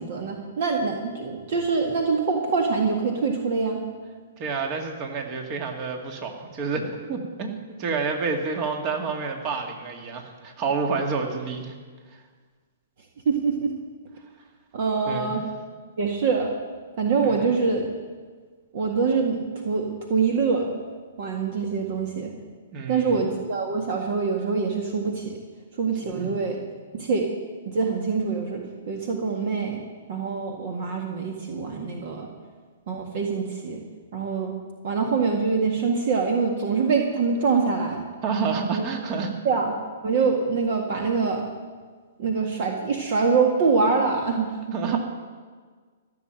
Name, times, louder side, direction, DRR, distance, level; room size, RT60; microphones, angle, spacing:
voice 1, 0.0-3.8 13.3-13.7 14.7-15.4 16.0-16.5 17.0-17.9 18.7-19.4 19.7-20.7 21.2-22.3 22.9-25.4 25.8-26.6 26.9-27.3 27.7-29.8 30.1-32.3 32.9-33.8 34.1-34.5 34.8-38.0 38.7-38.8 39.4-39.7 40.0-41.4 42.2-44.6 44.9-45.0, right 5 dB, 50° right, 2 dB, 1.8 m, -24 dB
voice 2, 4.4-7.5 7.8-11.7 15.1-15.4 17.2-17.5 22.7-23.2 26.2-26.3 38.2-39.3 44.7-45.0, right 5 dB, 35° right, 3 dB, 2.2 m, -29 dB
14.5 x 7.2 x 9.0 m, 1.5 s
hypercardioid pair, 120°, 0 cm